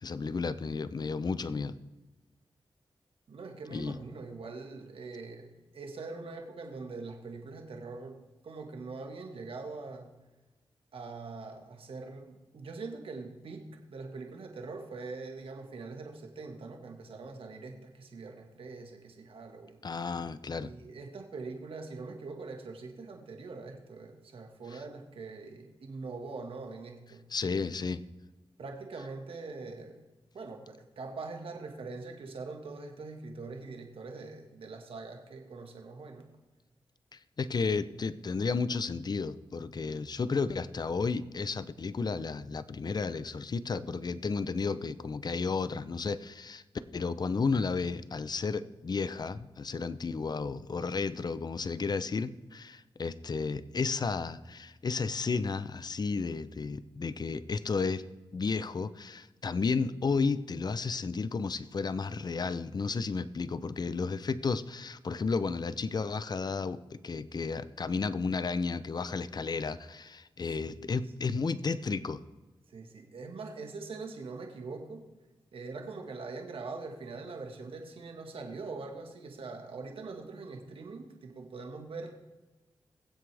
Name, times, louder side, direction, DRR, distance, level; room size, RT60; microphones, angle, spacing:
voice 1, 0.0-1.8 3.7-4.0 19.8-20.7 24.7-24.8 27.3-28.0 37.1-46.6 46.9-58.0 58.3-72.2, left 4 dB, 50° left, 15 dB, 0.6 m, -33 dB
voice 2, 3.3-10.2 10.9-19.8 20.6-27.6 28.6-30.0 30.3-36.3 70.6-71.4 72.7-75.0 75.5-82.1, right 3 dB, 80° right, 3 dB, 1.7 m, -43 dB
22.0 x 7.8 x 3.4 m, 1.1 s
cardioid pair, 65°, 9 cm